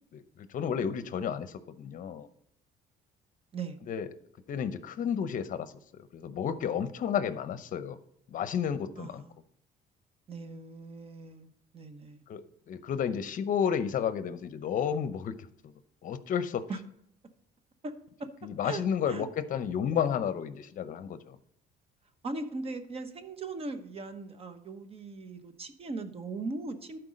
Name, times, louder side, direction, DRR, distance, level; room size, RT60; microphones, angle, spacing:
voice 1, 0.4-2.3 3.9-4.1 4.5-8.0 8.3-9.2 12.3-15.3 16.0-16.7 18.4-21.4, left 8 dB, 50° left, 13 dB, 0.7 m, -32 dB
voice 2, 9.0-9.4 10.3-12.2 16.7-16.8 17.8-17.9 18.2-18.3 18.6-19.3 22.2-27.0, right 3 dB, 35° right, 9 dB, 1.0 m, -39 dB
11.5 x 4.6 x 5.1 m, 0.72 s
cardioid pair, 110°, 17 cm